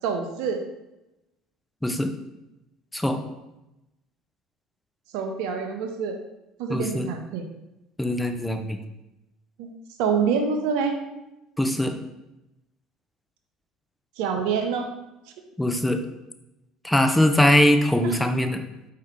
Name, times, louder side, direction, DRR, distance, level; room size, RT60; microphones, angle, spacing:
voice 1, 0.0-0.6 5.1-6.2 6.6-7.5 9.6-9.7 10.0-11.0 14.2-14.9 18.0-18.2, right 6 dB, 70° right, 5 dB, 0.6 m, -26 dB
voice 2, 6.7-7.1 8.0-8.8 11.6-11.9 15.6-16.0 16.8-18.6, left 1 dB, 5° left, 6 dB, 0.5 m, -21 dB
4.6 x 2.8 x 3.4 m, 0.93 s
hypercardioid pair, 70°, 0 cm